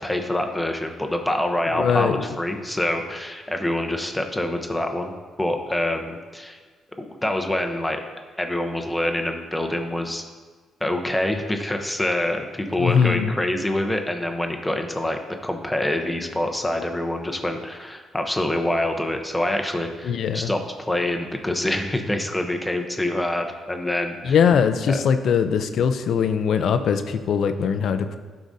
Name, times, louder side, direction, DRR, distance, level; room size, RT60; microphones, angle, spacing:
voice 1, 0.0-5.1 5.4-6.6 7.0-8.0 8.4-10.2 10.8-20.6 20.9-24.4 24.9-25.0, left 1 dB, 10° left, 4 dB, 0.8 m, -26 dB
voice 2, 1.7-2.2 12.8-13.3 20.0-20.5 24.2-28.2, left 7 dB, 65° left, 9 dB, 0.5 m, -21 dB
11.5 x 4.8 x 2.7 m, 1.5 s
cardioid pair, 90°, 0 cm